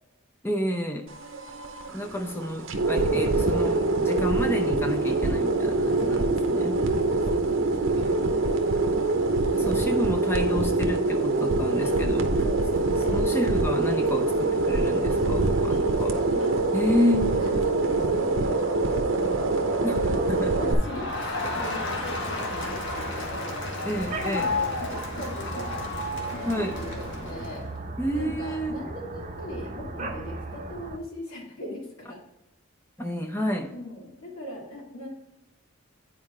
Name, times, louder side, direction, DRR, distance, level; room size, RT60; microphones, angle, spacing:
voice 1, 0.4-1.1 1.9-6.8 9.5-12.3 13.0-16.2 16.7-17.3 19.8-20.6 21.4-21.5 23.8-24.5 26.5-26.8 28.0-28.8 33.0-33.7, left 1 dB, 10° left, 4 dB, 0.7 m, -29 dB
sound 1, 1.1-20.7, right 2 dB, 65° right, 0.8 m, -24 dB
voice 2, 5.9-7.7 11.8-12.0 12.4-13.2 15.1-15.2 15.5-16.5 16.9-18.6 18.9-19.8 20.1-23.6 24.1-27.7 28.1-32.2 33.7-35.1, left 1 dB, 80° left, -3 dB, 2.6 m, -40 dB
sound 2, 19.9-31.0, right 2 dB, 35° right, 0.8 m, -37 dB
Crowd, 20.7-27.7, left 3 dB, 60° left, 1.3 m, -33 dB
9.4 x 4.7 x 3.2 m, 0.93 s
head